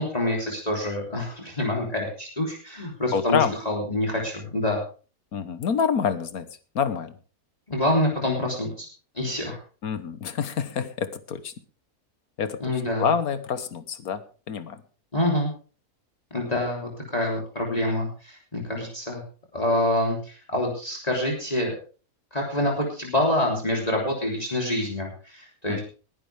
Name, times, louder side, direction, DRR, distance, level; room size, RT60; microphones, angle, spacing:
voice 1, 0.0-4.8 7.7-8.9 9.2-9.6 12.6-13.1 15.1-15.5 16.3-19.2 19.5-21.7 22.3-25.8, left 1 dB, 25° left, -1 dB, 3.4 m, -26 dB
voice 2, 3.1-3.5 5.3-6.4 6.7-7.1 9.8-11.5 12.4-14.2 14.5-14.8 25.7-25.8, left 7 dB, 75° left, 12 dB, 1.7 m, -27 dB
20.5 x 11.0 x 3.4 m, 0.37 s
omnidirectional pair, 1.6 m